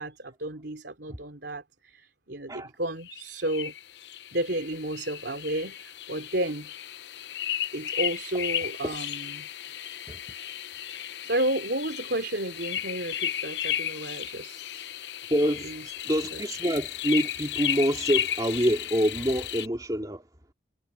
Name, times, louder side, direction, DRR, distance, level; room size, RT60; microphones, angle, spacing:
voice 1, 0.0-3.7 4.3-6.7 7.7-9.5 10.9-14.9 15.6-15.7, right 1 dB, 70° right, 3.3 m, -32 dB
sound 1, 3.0-19.7, left 10 dB, 70° left, 0.7 m, -34 dB
voice 2, 15.3-20.3, equal, 20° right, 2.7 m, -26 dB
head